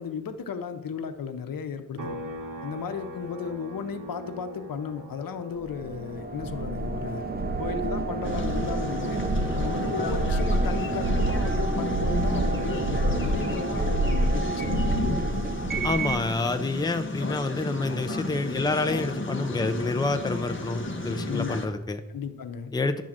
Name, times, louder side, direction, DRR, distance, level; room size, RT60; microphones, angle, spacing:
voice 1, 0.0-2.1 2.6-7.2 7.6-9.2 9.5-15.5 21.3-21.6 22.1-22.7, left 6 dB, 85° left, 8 dB, 0.8 m, -34 dB
sound 1, 2.0-15.5 15.9-18.1, equal, 70° right, 1.3 m, -45 dB
sound 2, 5.7-16.3, right 2 dB, 30° right, 0.7 m, -27 dB
sound 3, 8.2-21.7, left 2 dB, 35° left, 1.0 m, -33 dB
voice 2, 15.8-22.0 22.7-23.0, left 3 dB, 10° left, 8 dB, 0.5 m, -28 dB
10.5 x 3.8 x 7.3 m, 0.99 s
wide cardioid pair, 140°, 33 cm